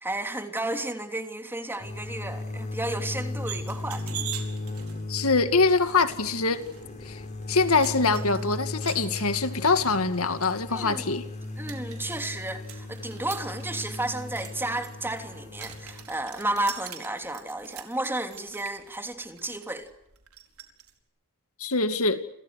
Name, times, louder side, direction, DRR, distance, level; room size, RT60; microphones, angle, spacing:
voice 1, 0.0-4.3 10.7-11.1 11.6-19.9, right 2 dB, 10° right, 3.1 m, -32 dB
sound 1, 1.8-16.0, left 2 dB, 35° left, 5.3 m, -37 dB
sound 2, 3.5-20.9, right 10 dB, 75° right, 4.8 m, -45 dB
voice 2, 5.1-6.6 7.1-7.2 7.5-11.2 21.6-22.2, left 3 dB, 75° left, 2.3 m, -24 dB
29.5 x 28.0 x 6.6 m
head